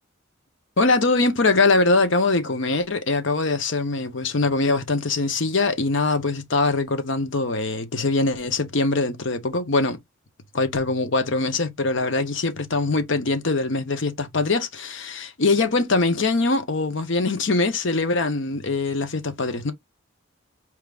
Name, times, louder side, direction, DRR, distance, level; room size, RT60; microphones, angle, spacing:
voice 1, 0.8-10.0 10.5-19.7, left 3 dB, 60° left, 0.9 m, -22 dB
4.6 x 3.5 x 2.4 m
head